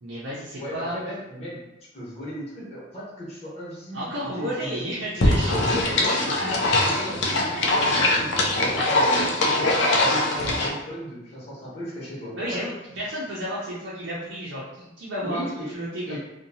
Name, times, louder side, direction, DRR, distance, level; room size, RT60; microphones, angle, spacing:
voice 1, 0.0-1.0 3.9-6.2 7.7-7.9 12.3-16.2, equal, 75° right, -8 dB, 0.6 m, -32 dB
voice 2, 0.6-1.6 1.9-4.9 5.2-7.4 7.9-12.7 15.2-15.7 16.1-16.2, equal, 35° left, -10 dB, 1.0 m, -36 dB
sound 1, 5.2-10.7, left 2 dB, 65° left, 0.5 m, -22 dB
2.7 x 2.2 x 2.7 m, 0.94 s
head